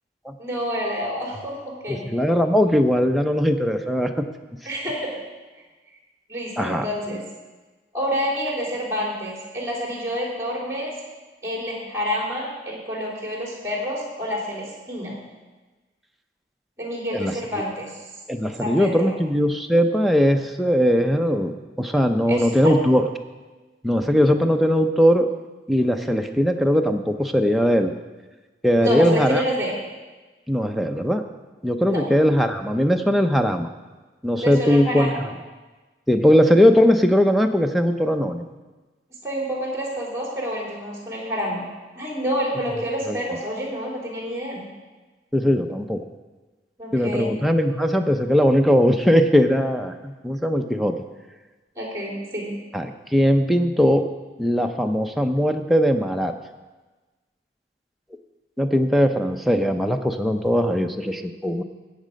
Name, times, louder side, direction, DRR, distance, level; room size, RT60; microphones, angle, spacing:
voice 1, 0.4-2.0 4.7-5.1 6.3-7.2 7.9-10.9 11.4-15.1 16.8-17.9 18.6-19.2 22.3-22.7 28.8-29.7 31.9-32.0 34.4-35.2 39.2-41.6 42.0-44.6 46.8-47.3 51.8-52.6, equal, 15° right, -3 dB, 3.5 m, -28 dB
voice 2, 1.9-4.3 6.6-6.8 17.1-17.3 18.3-23.1 23.8-25.3 25.7-27.9 28.6-29.4 30.5-31.2 31.6-33.7 34.2-35.1 36.1-38.5 43.1-43.2 45.3-46.0 46.9-50.9 52.7-54.0 54.4-56.3 58.6-61.6, equal, ahead, 4 dB, 0.6 m, -20 dB
14.0 x 8.5 x 5.2 m, 1.2 s
head